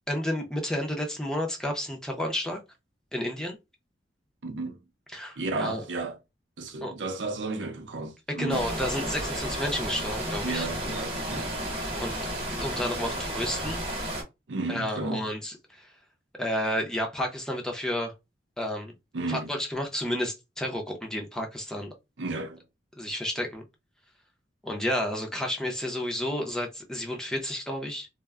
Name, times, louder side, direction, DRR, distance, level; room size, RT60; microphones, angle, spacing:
voice 1, 0.1-2.6 3.1-3.6 5.1-5.8 6.8-6.9 8.3-10.7 12.0-12.1 12.5-13.8 14.7-15.9 16.4-18.1 18.6-18.9 19.3-21.9 23.0-23.6 24.6-28.1, left 1 dB, 5° left, 0.5 m, -31 dB
voice 2, 4.4-4.8 5.4-6.2 6.6-8.7 10.4-11.5 14.5-15.3 19.1-19.6 22.2-22.6, right 3 dB, 90° right, 0.6 m, -33 dB
sound 1, 8.5-14.2, right 1 dB, 30° right, 1.0 m, -32 dB
2.2 x 2.0 x 3.4 m
head